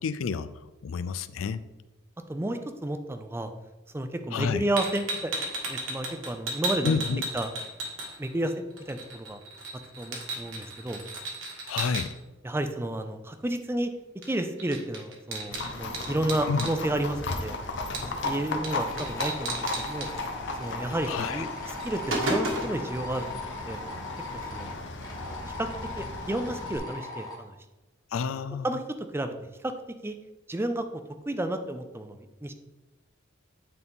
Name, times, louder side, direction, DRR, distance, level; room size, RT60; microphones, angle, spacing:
voice 1, 0.0-1.6 4.3-4.7 6.8-7.2 11.7-12.1 16.5-16.7 21.1-21.5 28.1-28.7, left 5 dB, 85° left, 15 dB, 0.4 m, -29 dB
voice 2, 2.3-3.5 3.9-7.0 7.3-7.5 8.2-9.4 10.0-11.0 12.4-13.9 14.3-17.6 18.0-20.1 20.6-21.5 21.8-23.8 24.3-24.7 25.3-25.7 26.0-27.5 28.6-28.8 29.1-29.3 29.6-29.7 30.0-30.2 30.5-30.9 31.3-32.5, right 1 dB, 10° right, 8 dB, 0.4 m, -31 dB
sound 1, 4.8-8.5 8.8-12.0 14.2-14.3 14.6-16.7 17.9-18.3 18.6-18.7 19.0-20.1 21.2-21.3 21.7-22.8, right 2 dB, 70° right, 1.6 m, -33 dB
Livestock farm animals working animals, 15.5-26.8, left 2 dB, 60° left, 0.8 m, -36 dB
sound 2, 18.7-27.4, left 2 dB, 20° left, 1.3 m, -39 dB
9.3 x 4.1 x 3.6 m, 1.1 s
head